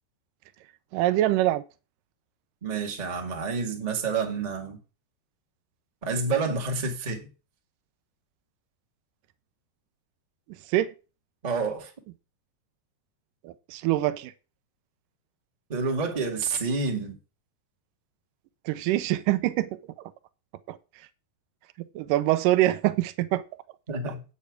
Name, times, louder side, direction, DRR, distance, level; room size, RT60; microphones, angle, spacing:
voice 1, 0.9-1.6 10.7-10.9 13.4-14.3 18.7-19.7 20.7-20.8 22.0-23.4, right 15 dB, 80° right, 1.9 m, -24 dB
voice 2, 2.6-4.8 6.0-7.3 11.4-11.9 15.7-17.2 23.9-24.2, right 4 dB, 25° right, 0.9 m, -29 dB
9.0 x 8.3 x 4.9 m
omnidirectional pair, 4.7 m